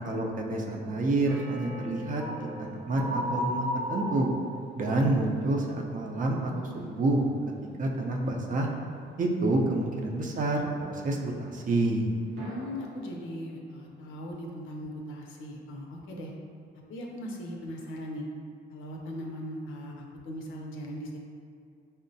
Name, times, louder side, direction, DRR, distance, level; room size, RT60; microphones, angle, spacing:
voice 1, 0.0-4.3 4.8-7.2 7.6-8.7 9.2-12.1, right 2 dB, 40° right, 0 dB, 0.5 m, -28 dB
sound 1, 1.3-7.0 7.3-7.7 8.1-8.3, equal, 5° right, 0.9 m, -37 dB
voice 2, 12.3-16.3 16.9-18.3 18.7-21.2, equal, 85° left, 0 dB, 0.5 m, -39 dB
sound 2, 12.4-16.7, equal, 90° right, 0.8 m, -50 dB
5.4 x 2.1 x 2.6 m, 2.3 s
cardioid pair, 90°, 20 cm